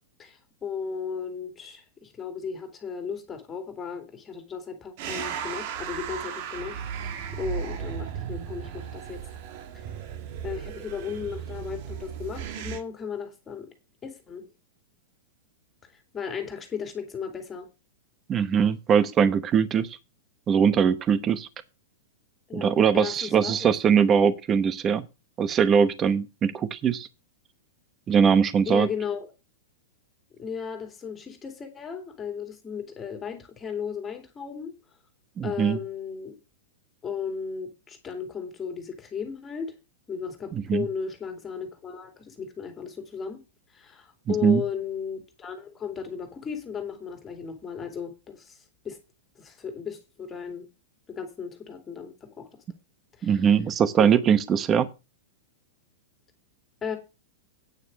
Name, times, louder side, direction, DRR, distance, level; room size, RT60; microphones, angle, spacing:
voice 1, 0.2-6.8 7.3-9.2 9.7-9.9 10.4-13.7 14.0-14.5 15.9-17.7 22.5-22.7 22.9-23.7 28.7-29.3 30.4-34.7 35.4-36.4 37.0-39.7 40.1-43.4 43.7-49.0 49.4-50.7 51.1-52.6 53.2-53.5 54.0-54.1 56.8-57.0, left 6 dB, 20° left, 2.6 m, -35 dB
sound 1, 5.0-12.8, right 8 dB, 55° right, 1.5 m, -35 dB
voice 2, 18.3-20.0 20.5-21.5 22.5-25.0 25.4-27.1 28.1-28.9 35.4-35.8 40.5-40.9 44.3-44.6 53.2-54.9, right 7 dB, 25° right, 0.9 m, -21 dB
9.3 x 6.4 x 6.3 m
hypercardioid pair, 130°, 0 cm